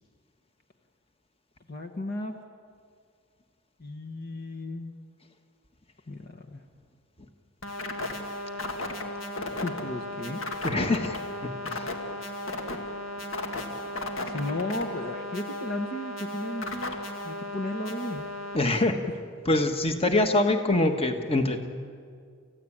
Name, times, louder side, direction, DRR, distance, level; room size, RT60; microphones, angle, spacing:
voice 1, 1.7-2.4 3.8-4.9 6.1-6.6 9.6-10.4 12.2-12.4 14.2-17.0 17.2-18.3, left 1 dB, 45° left, 4 dB, 1.2 m, -34 dB
sound 1, 7.6-18.6, left 1 dB, 75° left, 1.9 m, -35 dB
voice 2, 10.6-11.9 18.5-19.0 19.5-21.6, left 2 dB, 30° left, 6 dB, 1.5 m, -25 dB
29.0 x 15.0 x 8.8 m, 2.1 s
head